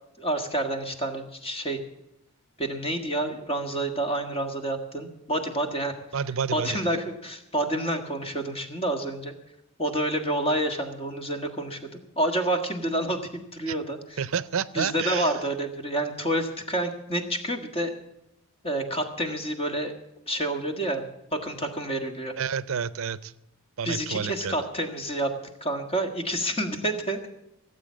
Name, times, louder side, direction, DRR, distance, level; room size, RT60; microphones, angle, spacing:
voice 1, 0.2-1.8 2.6-6.0 6.5-9.3 9.8-14.2 14.7-17.9 18.6-19.9 20.3-21.0 21.3-22.3 23.8-25.3 25.6-27.3, right 1 dB, 25° left, 5 dB, 1.6 m, -28 dB
voice 2, 6.1-6.8 13.7-13.8 14.2-15.3 22.4-23.3 23.8-24.6, right 7 dB, 70° right, 17 dB, 0.5 m, -29 dB
17.5 x 8.1 x 7.3 m, 0.88 s
head